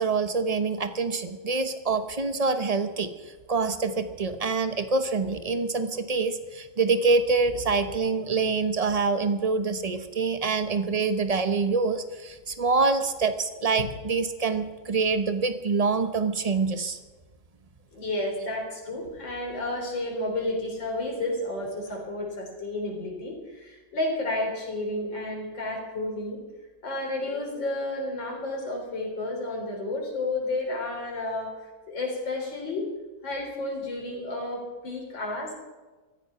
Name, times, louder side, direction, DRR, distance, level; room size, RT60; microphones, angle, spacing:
voice 1, 0.0-3.1 3.5-17.0, right 4 dB, 50° right, 10 dB, 0.4 m, -26 dB
voice 2, 17.9-26.4 26.8-32.9 33.2-35.5, left 2 dB, 65° left, 0 dB, 4.5 m, -31 dB
14.5 x 14.5 x 5.7 m, 1.3 s
omnidirectional pair, 2.2 m